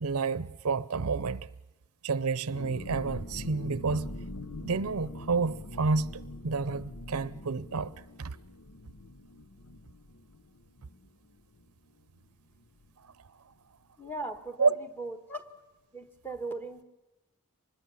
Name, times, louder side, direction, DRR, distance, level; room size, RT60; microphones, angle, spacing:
voice 1, 0.0-1.5 2.0-4.1 4.6-7.9 8.2-8.4 13.0-13.1 14.6-14.8, right 4 dB, 80° right, 0.7 m, -30 dB
Echoing Bubbling Under Water Longer, 2.5-11.9 12.2-12.3 12.6-12.9, left 1 dB, 75° left, 1.1 m, -44 dB
voice 2, 14.0-15.5 15.9-16.8, right 2 dB, 10° left, 1.5 m, -38 dB
24.5 x 20.5 x 7.1 m
head